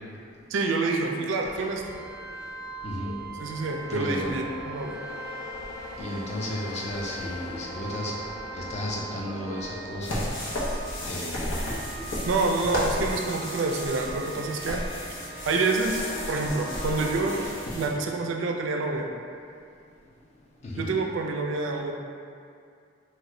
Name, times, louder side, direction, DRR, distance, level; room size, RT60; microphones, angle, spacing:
voice 1, 0.5-2.0 3.4-5.0 12.3-14.8 15.5-16.0 16.3-17.4 17.7-19.1 20.8-21.9, right 3 dB, 80° right, 2 dB, 0.3 m, -27 dB
sound 1, 1.3-17.5, right 2 dB, ahead, 0.7 m, -39 dB
voice 2, 2.8-3.1 3.9-4.4 6.0-8.1 8.5-10.2 11.1-11.6 20.6-20.9, left 1 dB, 35° left, -3 dB, 0.4 m, -33 dB
sound 2, 10.0-17.9, left 1 dB, 90° left, 0.7 m, -33 dB
3.1 x 2.1 x 3.6 m, 2.3 s
head